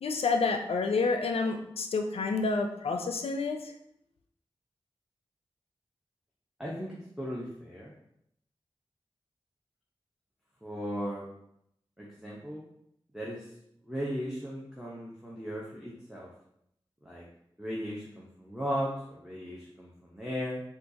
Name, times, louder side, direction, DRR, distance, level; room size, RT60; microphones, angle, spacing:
voice 1, 0.0-3.6, left 4 dB, 90° left, 5 dB, 0.4 m, -29 dB
voice 2, 6.6-7.9 10.6-11.2 12.0-12.6 13.1-13.5 13.9-16.3 17.0-17.2 17.6-20.6, equal, 5° right, -6 dB, 0.8 m, -37 dB
4.3 x 2.4 x 2.7 m, 0.75 s
cardioid pair, 50°, 10 cm